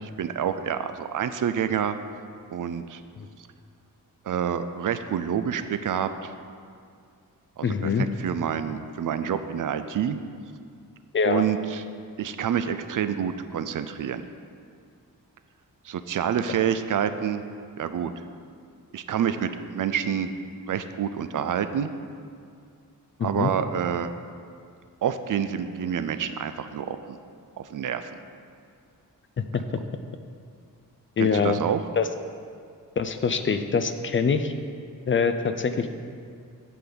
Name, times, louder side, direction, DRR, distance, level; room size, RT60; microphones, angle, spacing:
voice 1, 0.0-2.0 2.5-3.0 4.2-6.3 7.6-10.2 11.2-11.8 12.2-14.3 15.8-17.4 17.8-18.1 18.9-20.3 20.7-21.9 23.2-24.1 25.0-27.2 27.6-28.1 31.2-31.8, right 8 dB, 65° right, 10 dB, 0.5 m, -28 dB
voice 2, 7.6-8.1 11.1-11.4 23.2-23.5 29.4-29.6 31.2-31.6 32.0-32.1 33.0-34.5 35.1-35.9, left 5 dB, 35° left, 8 dB, 0.4 m, -24 dB
8.5 x 3.9 x 7.0 m, 2.2 s
wide cardioid pair, 120°, 35 cm